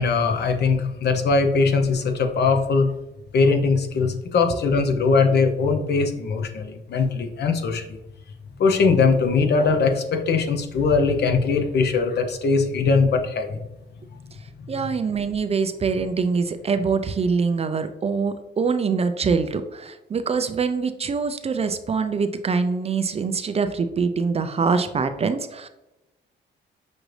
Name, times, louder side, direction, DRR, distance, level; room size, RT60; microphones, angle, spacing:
voice 1, 0.0-2.9 3.3-7.8 8.6-13.6, left 4 dB, 55° left, 5 dB, 0.7 m, -21 dB
voice 2, 14.7-25.7, right 5 dB, 30° right, 9 dB, 0.4 m, -24 dB
6.1 x 2.5 x 3.2 m, 0.95 s
cardioid pair, 90°, 20 cm